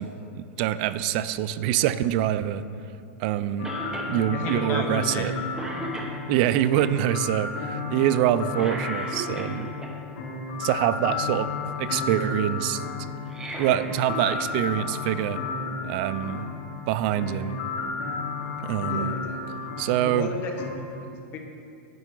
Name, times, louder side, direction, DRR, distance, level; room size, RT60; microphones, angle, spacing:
voice 1, 0.0-2.6 3.2-3.7 4.1-5.3 6.3-9.7 10.6-11.5 11.8-12.8 13.6-15.4 15.8-16.5 16.9-17.6 18.6-19.1 19.8-20.3, right 12 dB, 40° right, 13 dB, 0.4 m, -25 dB
sound 1, 3.6-20.7, left 4 dB, 75° left, 1.7 m, -33 dB
Cough, 3.6-4.1 4.5-4.6 5.1-5.3 5.5-6.5 8.5-9.9 13.2-14.5 14.8-14.9 16.0-16.1, right 2 dB, 10° right, 1.0 m, -36 dB
voice 2, 4.3-5.3 5.7-5.8 18.8-19.6 20.0-21.4, left 3 dB, 30° left, 3 dB, 1.1 m, -34 dB
10.5 x 9.0 x 3.8 m, 2.6 s
supercardioid pair, 165°, 7 cm